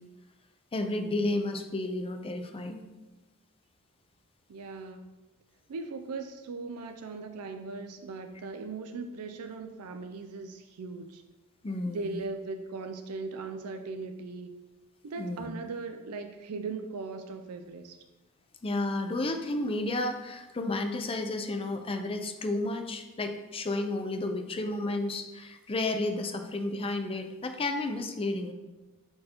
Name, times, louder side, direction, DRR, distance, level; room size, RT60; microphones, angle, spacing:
voice 1, 0.7-2.8 11.6-12.2 15.2-15.5 18.6-28.5, left 2 dB, 25° left, 6 dB, 0.5 m, -32 dB
voice 2, 4.5-5.1 5.7-11.2 11.9-14.5 15.0-18.0, right 4 dB, 80° right, 6 dB, 0.4 m, -39 dB
4.9 x 4.5 x 4.3 m, 1.1 s
head